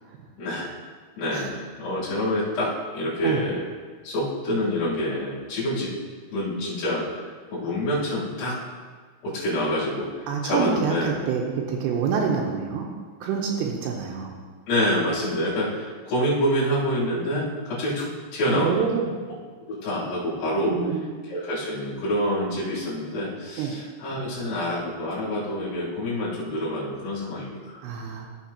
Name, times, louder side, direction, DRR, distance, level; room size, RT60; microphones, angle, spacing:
voice 1, 0.4-0.7 1.2-3.6 4.0-5.9 6.3-7.1 7.5-8.6 9.2-10.1 10.4-11.2 14.7-18.8 19.7-20.8 21.3-27.8, equal, 65° left, -11 dB, 4.7 m, -27 dB
voice 2, 10.3-12.9 13.2-14.3 18.5-19.1 20.7-21.0 23.6-23.8 27.8-28.3, right 6 dB, 75° right, 0 dB, 2.7 m, -26 dB
14.5 x 6.6 x 2.9 m, 1.5 s
omnidirectional pair, 5.3 m